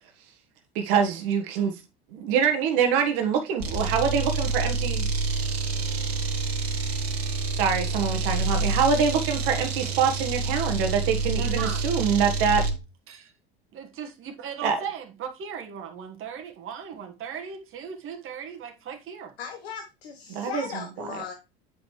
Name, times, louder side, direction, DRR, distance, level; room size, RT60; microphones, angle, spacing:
voice 1, 0.7-1.7 2.1-5.1 7.6-12.6 14.6-14.8 20.3-20.6, right 6 dB, 65° right, 1.4 m, -25 dB
sound 1, 3.6-12.8, right 3 dB, 80° right, 1.4 m, -27 dB
voice 2, 11.4-11.9 13.1-13.3 13.7-19.3, right 7 dB, 45° right, 1.6 m, -38 dB
voice 3, 19.4-21.3, left 6 dB, 85° left, 1.2 m, -37 dB
9.0 x 5.2 x 3.2 m
hypercardioid pair, 75°, 30 cm